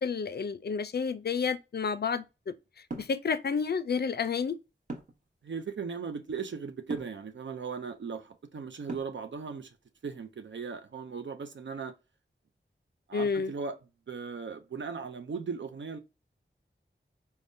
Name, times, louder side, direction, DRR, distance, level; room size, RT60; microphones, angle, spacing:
voice 1, 0.0-2.5 2.9-4.6 13.1-13.5, left 5 dB, 55° left, 0.4 m, -30 dB
sound 1, 2.9-3.2 4.9-5.3 6.9-7.2 8.9-9.3, right 3 dB, 40° right, 1.0 m, -39 dB
voice 2, 5.4-9.7 10.0-11.9 13.1-13.8 14.1-16.0, right 5 dB, 65° right, 0.4 m, -38 dB
3.4 x 2.1 x 2.5 m
wide cardioid pair, 45°, 21 cm